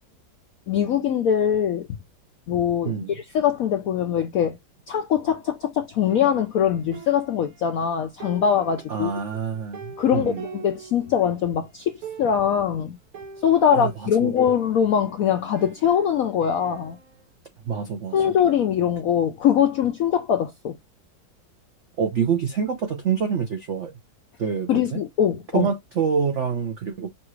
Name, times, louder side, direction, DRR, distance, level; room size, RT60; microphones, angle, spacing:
voice 1, 0.7-1.9 2.5-4.6 4.9-9.1 10.0-13.0 13.4-17.0 18.1-20.8 24.7-25.7, left 8 dB, 85° left, 0.7 m, -22 dB
sound 1, 6.1-7.9 8.2-11.5 11.8-11.9 12.0-12.6 13.1-15.1 15.6-17.2, right 5 dB, 50° right, 1.4 m, -44 dB
voice 2, 8.9-10.4 13.7-14.4 17.7-18.4 22.0-23.9 24.4-25.0 25.5-27.1, right 6 dB, 75° right, 0.6 m, -26 dB
5.7 x 2.4 x 3.1 m
omnidirectional pair, 2.2 m